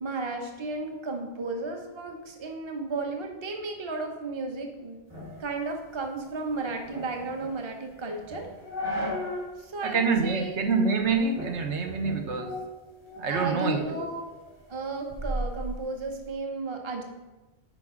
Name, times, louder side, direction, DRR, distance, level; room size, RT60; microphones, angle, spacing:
voice 1, 0.0-5.0 5.4-8.5 9.6-10.7 13.3-14.3 14.7-17.0, right 3 dB, 30° right, 3 dB, 0.8 m, -34 dB
sound 1, 5.1-9.6 9.9-10.0 10.6-11.0 11.4-13.4 13.8-16.3, equal, 55° right, 2.6 m, -37 dB
voice 2, 9.8-12.5 13.2-14.1, right 4 dB, 80° right, 4 dB, 1.2 m, -26 dB
10.5 x 4.7 x 3.7 m, 1.1 s
omnidirectional pair, 1.2 m